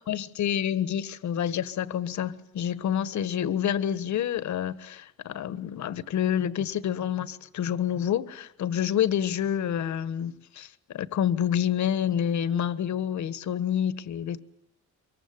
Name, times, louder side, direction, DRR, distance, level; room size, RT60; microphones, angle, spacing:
voice 1, 0.1-14.4, left 9 dB, 70° left, 1.4 m, -28 dB
25.0 x 22.5 x 9.6 m
wide cardioid pair, 175°, 31 cm